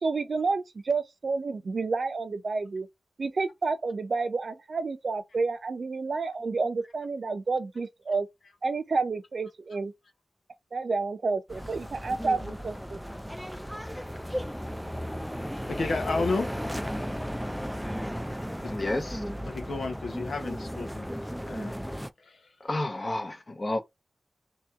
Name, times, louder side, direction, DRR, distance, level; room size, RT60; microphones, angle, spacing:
voice 1, 0.0-2.9 3.2-8.3 8.6-9.9 10.7-13.3, right 4 dB, 70° right, 0.6 m, -30 dB
sound 1, 11.5-22.1, equal, ahead, 0.4 m, -35 dB
voice 2, 15.7-16.5 18.6-18.7 19.5-21.1 21.4-21.7 22.2-22.5, left 3 dB, 90° left, 1.0 m, -31 dB
voice 3, 18.7-19.2 22.6-23.8, left 2 dB, 40° left, 1.3 m, -30 dB
3.0 x 2.9 x 3.6 m
wide cardioid pair, 60°, 0 cm